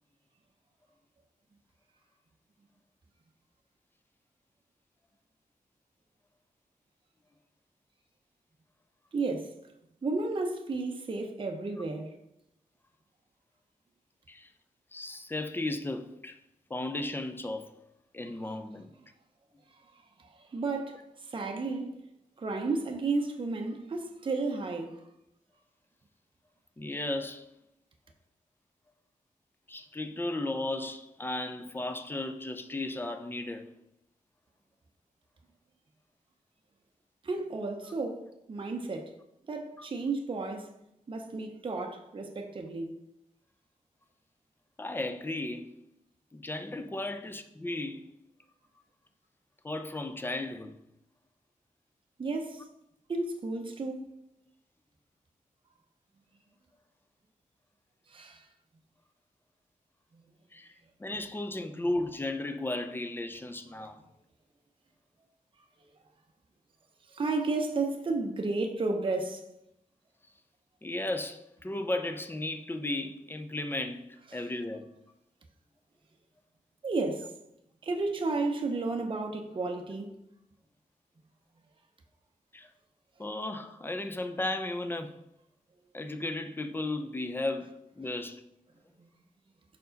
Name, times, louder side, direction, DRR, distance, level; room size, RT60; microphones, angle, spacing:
voice 1, 9.1-9.7 10.0-12.2 19.9-22.1 22.4-25.0 37.2-39.2 39.5-40.7 41.1-43.0 52.2-52.7 53.1-54.1 58.1-58.5 60.1-60.2 67.1-69.5 74.3-74.5 76.8-77.3 77.8-80.1 89.0-89.1, right 3 dB, 35° right, 0.6 m, -33 dB
voice 2, 14.9-16.4 16.7-17.7 18.1-18.9 26.8-27.5 29.7-33.7 44.8-45.7 46.3-48.0 49.6-50.7 60.5-60.7 61.0-64.0 70.8-74.0 74.3-74.9 82.5-82.7 83.2-85.1 85.9-88.4, left 2 dB, 15° left, 0.4 m, -35 dB
5.2 x 4.6 x 3.9 m
wide cardioid pair, 130°, 14 cm